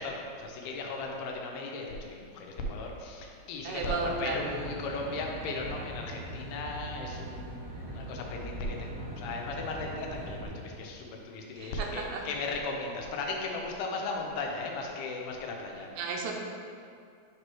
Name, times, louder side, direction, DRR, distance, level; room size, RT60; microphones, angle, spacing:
voice 1, 0.0-15.9, left 3 dB, 85° left, 0 dB, 2.5 m, -36 dB
voice 2, 3.6-4.4 11.6-12.3 16.0-16.3, right 4 dB, 80° right, 0 dB, 2.4 m, -34 dB
Aircraft, 3.7-10.5, equal, 60° right, 2.7 m, -41 dB
6.7 x 3.1 x 4.6 m, 2.3 s
omnidirectional pair, 4.3 m